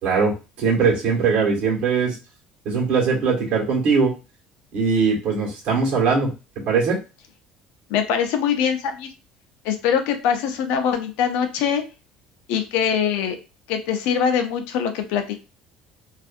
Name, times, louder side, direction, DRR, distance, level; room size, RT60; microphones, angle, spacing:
voice 1, 0.0-2.2 2.6-4.1 4.7-6.3 6.6-7.0, right 5 dB, 55° right, -2 dB, 1.3 m, -20 dB
voice 2, 7.9-9.1 9.6-11.8 12.5-13.4 13.7-15.4, left 7 dB, 80° left, 7 dB, 0.5 m, -23 dB
2.6 x 2.5 x 2.4 m, 0.30 s
cardioid pair, 160°, 2 cm